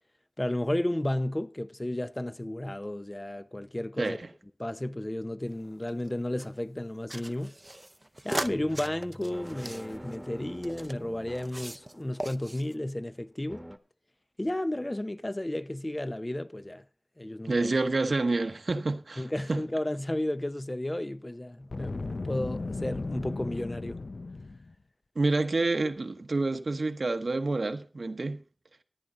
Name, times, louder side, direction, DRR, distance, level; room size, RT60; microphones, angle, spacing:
voice 1, 0.4-4.2 4.6-7.6 8.2-13.7 14.4-16.8 17.2-17.7 19.2-24.0, left 1 dB, 30° left, 0.7 m, -33 dB
voice 2, 4.0-4.3 17.4-19.6 25.1-28.4, right 3 dB, 85° right, 1.1 m, -28 dB
sound 1, 5.5-6.5 7.1-11.0 11.3-11.9 12.2-12.7, right 1 dB, 30° right, 0.6 m, -39 dB
sound 2, 8.4-12.4 13.5-13.8, equal, 10° right, 1.3 m, -46 dB
Boom, 21.6-24.7, left 3 dB, 85° left, 0.5 m, -36 dB
14.0 x 9.8 x 3.8 m
wide cardioid pair, 50°, 0 cm